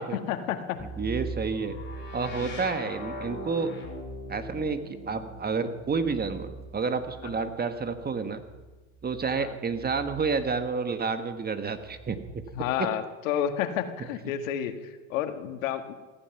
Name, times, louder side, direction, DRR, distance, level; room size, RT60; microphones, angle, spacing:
voice 1, 0.0-0.8 2.4-2.6 7.2-7.3 9.3-9.5 12.5-15.9, left 10 dB, 80° left, 8 dB, 1.7 m, -31 dB
sound 1, 0.8-10.6 11.6-12.6, right 1 dB, 30° left, 5.3 m, -41 dB
voice 2, 1.0-1.8 2.1-3.7 4.3-8.4 9.0-12.2, right 4 dB, 25° right, 9 dB, 1.5 m, -30 dB
15.5 x 15.0 x 5.9 m, 1.2 s
hypercardioid pair, 95°, 39 cm